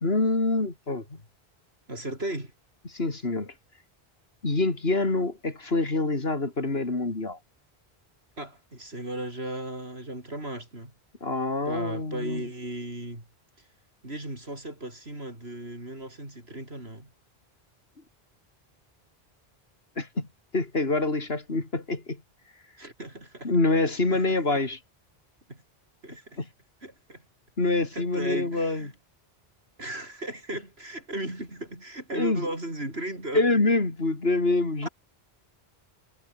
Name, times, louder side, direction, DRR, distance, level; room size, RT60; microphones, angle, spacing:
voice 1, 0.0-1.2 2.9-3.5 4.4-7.4 11.2-12.4 20.0-20.3 20.5-22.2 23.4-24.8 26.4-26.5 27.6-28.9 32.1-32.5 33.3-34.9, left 2 dB, 70° left, 3.7 m, -26 dB
voice 2, 1.9-2.5 8.4-10.9 11.7-13.3 14.0-17.1 22.8-23.5 24.1-24.2 24.5-24.6 25.5-25.6 26.0-26.4 26.8-27.3 27.8-28.9 29.8-33.4 34.8-34.9, right 1 dB, 75° right, 7.0 m, -36 dB
omnidirectional pair, 1.1 m